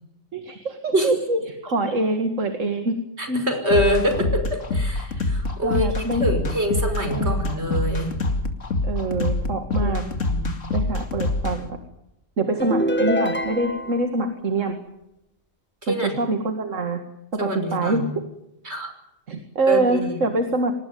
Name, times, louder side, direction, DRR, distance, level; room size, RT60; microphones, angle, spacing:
voice 1, 0.3-3.0 3.3-3.4 4.2-4.3 5.6-6.3 7.1-7.4 8.8-10.0 10.7-11.8 12.4-14.8 15.9-17.0 17.3-18.1 19.3-20.7, right 2 dB, 70° right, 6 dB, 2.4 m, -25 dB
voice 2, 3.2-8.1 9.8-10.6 15.8-16.2 17.4-18.1 18.6-18.9 19.7-20.2, equal, 55° right, 6 dB, 6.0 m, -25 dB
sound 1, 3.7-11.6, left 2 dB, 70° left, 2.8 m, -25 dB
sound 2, 12.6-14.1, equal, 10° left, 1.2 m, -24 dB
26.0 x 19.5 x 9.5 m, 0.86 s
omnidirectional pair, 1.4 m